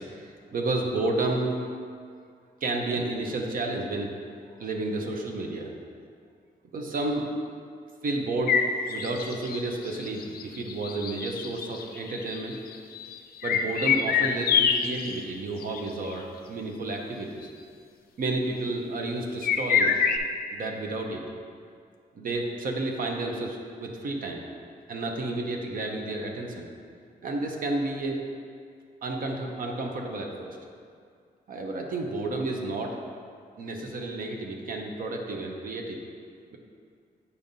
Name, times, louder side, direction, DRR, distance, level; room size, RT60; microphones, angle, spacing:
voice 1, 0.0-1.6 2.6-4.1 4.6-5.7 6.7-7.3 8.0-8.6 8.9-12.5 13.4-17.5 18.2-19.9 20.5-21.2 22.1-24.5 24.9-26.7 27.2-28.2 29.0-30.6 31.5-33.0 33.6-36.0, right 2 dB, 60° right, 1 dB, 0.7 m, -31 dB
sound 1, 8.5-15.2 15.6-15.8 16.1-16.2 17.4-17.5 19.4-20.2, left 6 dB, 70° left, 0.4 m, -26 dB
8.2 x 5.2 x 2.6 m, 2.2 s
wide cardioid pair, 140°, 16 cm